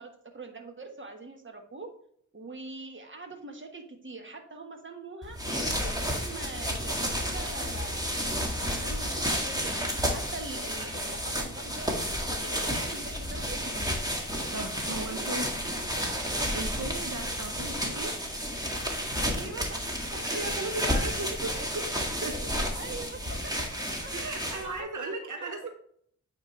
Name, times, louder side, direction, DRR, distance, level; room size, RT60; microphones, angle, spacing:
voice 1, 0.0-1.9 2.3-5.4 5.8-8.1 8.6-12.0 12.3-14.0 14.8-15.4 15.6-16.1 19.2-20.2 22.8-23.5 24.0-24.9 25.1-25.7, right 3 dB, 40° right, 3 dB, 1.5 m, -43 dB
sound 1, 5.2-24.8, equal, 15° right, 1.8 m, -31 dB
voice 2, 14.5-15.5 16.5-18.2 20.2-22.5 24.1-25.7, right 2 dB, 85° right, 4 dB, 0.9 m, -36 dB
8.9 x 4.4 x 3.2 m, 0.63 s
wide cardioid pair, 65°, 30 cm